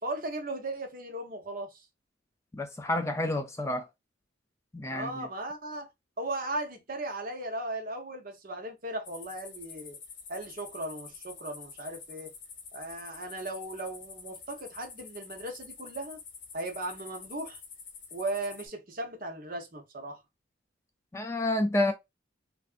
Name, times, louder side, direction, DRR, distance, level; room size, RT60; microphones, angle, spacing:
voice 1, 0.0-1.9 4.9-5.9 6.2-10.0 10.3-12.3 12.7-16.2 16.5-17.6 18.1-20.2, right 2 dB, 45° right, 0.8 m, -37 dB
voice 2, 2.5-3.9 4.7-5.3 21.1-21.9, left 1 dB, 15° left, 0.3 m, -29 dB
sound 1, 9.0-18.7, left 5 dB, 65° left, 0.9 m, -47 dB
3.4 x 2.5 x 2.4 m
head